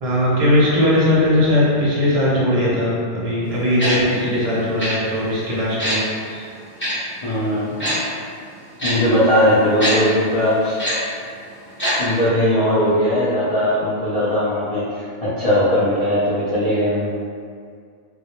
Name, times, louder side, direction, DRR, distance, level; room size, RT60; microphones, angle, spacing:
voice 1, 0.0-6.0 6.3-6.4, left 1 dB, 40° right, -8 dB, 0.6 m, -19 dB
Tick-tock, 3.8-3.9 4.8-4.9 5.8-6.0 6.8-6.9 7.8-7.9 8.8-8.9 9.8-9.9 10.8-10.9 11.8-11.9 12.2-12.3, equal, 10° left, 0.7 m, -22 dB
voice 2, 7.2-8.0 8.8-10.8 12.0-17.1, equal, 70° left, -11 dB, 0.3 m, -19 dB
2.2 x 2.1 x 2.8 m, 2.2 s
omnidirectional pair, 1.2 m